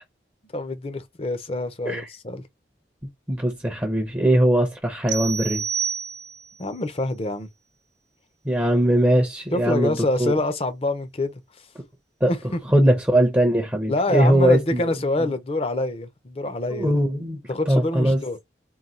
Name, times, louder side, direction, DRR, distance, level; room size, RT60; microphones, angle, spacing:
voice 1, 0.5-2.4 6.6-7.5 9.5-11.4 12.3-12.6 13.9-16.9 17.5-18.4, left 2 dB, 35° left, 0.6 m, -26 dB
voice 2, 3.3-5.6 8.5-10.3 12.2-12.3 12.7-14.9 16.7-17.4 17.7-18.2, right 1 dB, 10° right, 0.6 m, -20 dB
sound 1, 5.1-6.6, right 7 dB, 75° right, 0.6 m, -29 dB
3.8 x 2.2 x 4.3 m
head